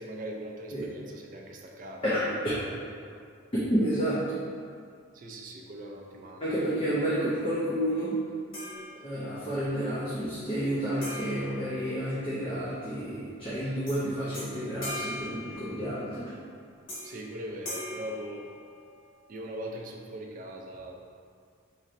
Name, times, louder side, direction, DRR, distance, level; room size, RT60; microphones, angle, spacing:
voice 1, 0.0-2.0 2.5-3.2 5.1-6.4 17.0-18.5 19.3-21.0, right 1 dB, 40° right, 0 dB, 0.4 m, -41 dB
voice 2, 2.0-2.7 3.7-4.2 6.4-8.2 9.0-16.3, equal, 25° left, -10 dB, 0.6 m, -30 dB
sound 1, 8.5-9.5 11.0-12.6 13.9-14.0 14.3-16.2 16.9-17.3 17.6-19.1, left 1 dB, 70° left, 1.3 m, -41 dB
4.2 x 3.1 x 2.5 m, 2.1 s
head